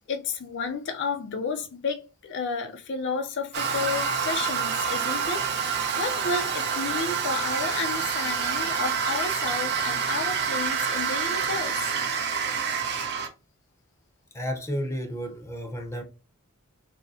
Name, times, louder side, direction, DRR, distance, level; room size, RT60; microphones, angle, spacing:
voice 1, 0.1-11.9, left 4 dB, 55° left, 0.5 m, -32 dB
Toilet flush, 3.5-13.3, right 6 dB, 50° right, 0.7 m, -27 dB
voice 2, 14.3-16.0, equal, 15° left, 0.7 m, -32 dB
6.2 x 2.1 x 2.6 m
head